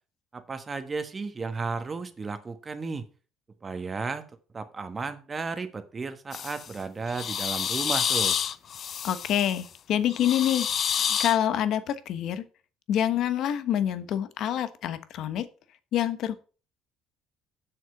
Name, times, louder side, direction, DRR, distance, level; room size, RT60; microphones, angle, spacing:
voice 1, 0.3-3.1 3.6-4.2 4.5-8.4, right 4 dB, 25° right, 1.3 m, -34 dB
sound 1, 6.3-6.7 7.1-9.6 10.1-11.4, left 8 dB, 45° left, 0.5 m, -29 dB
voice 2, 9.0-12.4 12.9-15.5 15.9-16.3, left 10 dB, 65° left, 1.1 m, -27 dB
7.8 x 6.5 x 5.9 m
cardioid pair, 100°, 0 cm